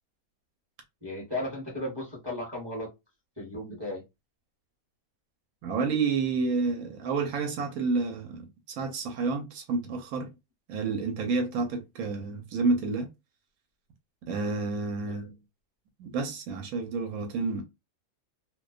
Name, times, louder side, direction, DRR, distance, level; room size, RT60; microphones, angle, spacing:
voice 1, 1.0-2.9 3.4-4.0 11.6-11.7 15.0-15.3, left 1 dB, 20° right, 0.9 m, -35 dB
voice 2, 5.6-8.5 8.8-10.3 10.7-13.1 14.3-15.3 16.0-17.6, right 4 dB, 85° right, 1.1 m, -29 dB
2.5 x 2.2 x 2.3 m
omnidirectional pair, 1.5 m